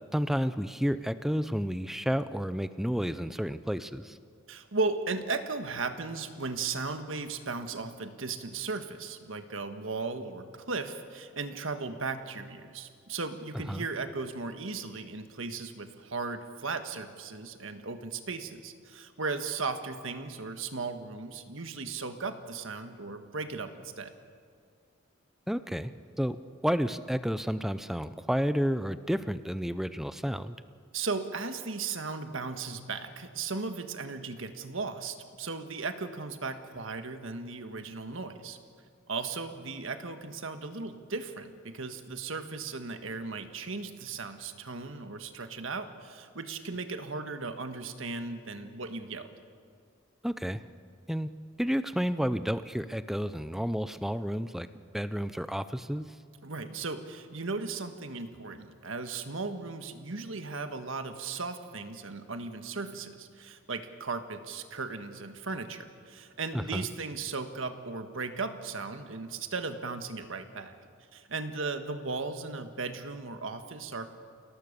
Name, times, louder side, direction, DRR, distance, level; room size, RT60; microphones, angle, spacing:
voice 1, 0.1-4.2 13.5-13.9 25.5-25.9 26.2-26.4 26.6-30.6 50.2-50.6 51.1-51.3 51.6-54.7 54.9-56.2 66.5-66.9, equal, ahead, 13 dB, 0.5 m, -31 dB
voice 2, 4.5-24.1 30.9-38.6 39.1-49.3 56.4-70.7 71.1-74.1, right 4 dB, 75° right, 8 dB, 1.6 m, -36 dB
29.0 x 18.0 x 6.8 m, 2.1 s
head